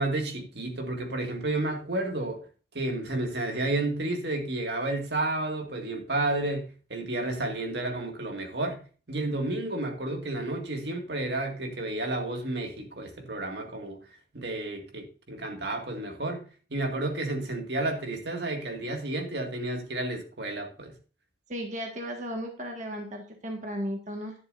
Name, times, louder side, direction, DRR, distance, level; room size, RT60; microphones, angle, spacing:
voice 1, 0.0-2.4 2.7-8.8 9.1-14.0 14.3-16.4 16.7-20.9, right 2 dB, 65° right, 2.1 m, -31 dB
voice 2, 21.5-24.3, equal, 40° right, 1.7 m, -35 dB
11.0 x 11.0 x 2.6 m
head